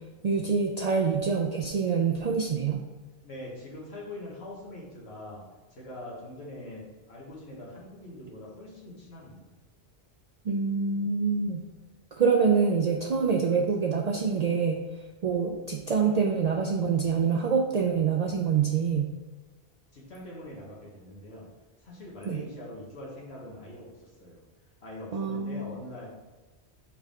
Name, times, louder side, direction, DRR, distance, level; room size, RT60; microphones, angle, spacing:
voice 1, 0.2-2.8 10.4-11.6 12.2-14.8 15.2-19.1 22.3-22.4 25.1-25.7, right 5 dB, 55° right, 0 dB, 0.5 m, -26 dB
voice 2, 3.2-5.4 5.7-9.5 19.9-21.5 21.8-24.4 24.8-26.1, left 1 dB, 75° left, -5 dB, 1.7 m, -43 dB
5.5 x 4.7 x 3.6 m, 1.2 s
omnidirectional pair, 1.1 m